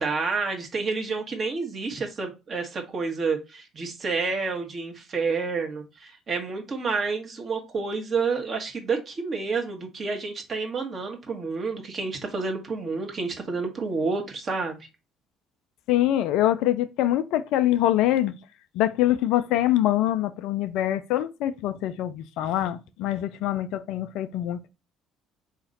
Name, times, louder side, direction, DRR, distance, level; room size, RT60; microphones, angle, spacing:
voice 1, 0.0-14.8, right 4 dB, 40° right, 1.3 m, -29 dB
voice 2, 15.9-18.3 18.7-24.7, left 13 dB, 60° left, 0.3 m, -24 dB
4.0 x 2.9 x 4.0 m
figure-of-eight pair, 55°, 0 cm